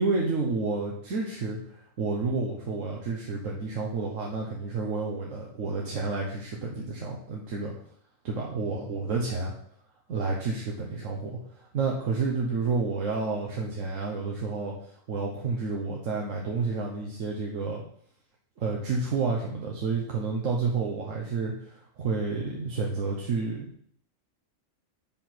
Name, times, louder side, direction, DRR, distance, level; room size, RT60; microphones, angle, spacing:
voice 1, 0.0-7.7 8.2-9.5 10.1-17.8 18.6-23.8, right 4 dB, 75° right, -2 dB, 1.3 m, -30 dB
5.5 x 4.4 x 5.9 m, 0.63 s
omnidirectional pair, 1.3 m